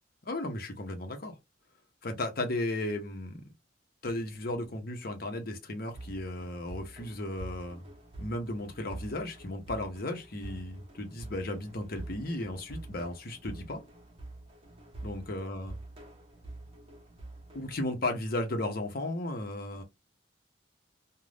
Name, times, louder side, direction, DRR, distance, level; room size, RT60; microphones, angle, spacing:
voice 1, 0.3-1.3 2.0-3.4 4.0-7.9 8.2-13.8 15.0-15.8 17.5-19.8, left 1 dB, 55° left, 0.8 m, -35 dB
sound 1, 5.9-17.9, right 2 dB, 30° right, 0.8 m, -47 dB
2.5 x 2.3 x 3.2 m
head